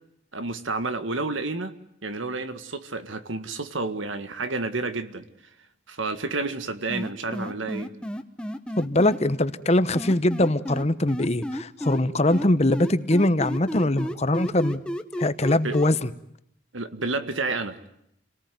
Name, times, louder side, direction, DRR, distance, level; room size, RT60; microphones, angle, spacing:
voice 1, 0.3-1.7 2.0-5.2 5.9-7.9 15.6-15.8 16.7-17.8, right 3 dB, 85° right, 10 dB, 1.8 m, -30 dB
sound 1, 6.9-9.2 9.9-12.0 12.3-15.9, equal, 5° left, 1.2 m, -32 dB
voice 2, 8.8-14.8 15.2-16.1, left 1 dB, 35° left, 13 dB, 1.0 m, -22 dB
29.0 x 19.0 x 9.4 m, 0.76 s
head